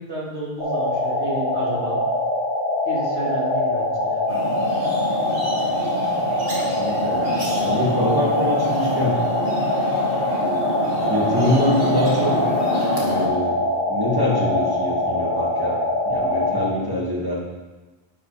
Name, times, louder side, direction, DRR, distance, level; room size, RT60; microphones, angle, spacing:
voice 1, 0.0-2.0 2.9-4.3, right 2 dB, 90° right, -5 dB, 2.9 m, -31 dB
sound 1, 0.6-16.7, left 1 dB, 50° left, 3.6 m, -23 dB
sound 2, 4.3-13.3, right 1 dB, 60° right, 2.5 m, -28 dB
voice 2, 6.8-9.2 11.1-12.4 12.9-13.6 13.9-15.8 16.0-17.4, left 1 dB, 20° right, -5 dB, 2.5 m, -24 dB
11.0 x 8.8 x 3.5 m, 1.2 s
omnidirectional pair, 1.1 m